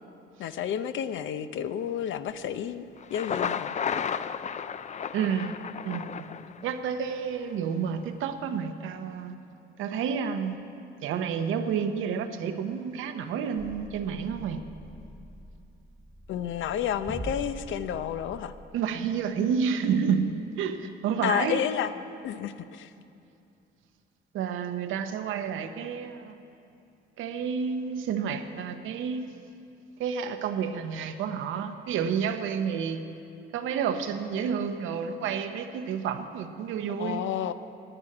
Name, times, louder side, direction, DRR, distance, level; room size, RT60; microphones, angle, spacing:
voice 1, 0.4-2.8 3.1-3.8 16.3-18.5 21.2-21.9 22.2-22.9 37.0-37.5, left 9 dB, 75° left, 12 dB, 0.6 m, -30 dB
Thunder, 3.0-6.9, left 7 dB, 35° left, 0.4 m, -33 dB
voice 2, 5.1-5.5 5.8-6.3 6.6-9.3 9.8-10.6 11.0-14.6 18.7-20.3 20.6-21.6 24.3-26.3 27.2-29.4 30.0-33.0 33.5-37.2, right 7 dB, 90° right, 7 dB, 0.9 m, -30 dB
sound 1, 13.6-18.7, right 1 dB, ahead, 1.1 m, -43 dB
11.0 x 9.9 x 8.6 m, 2.6 s
cardioid pair, 90°, 20 cm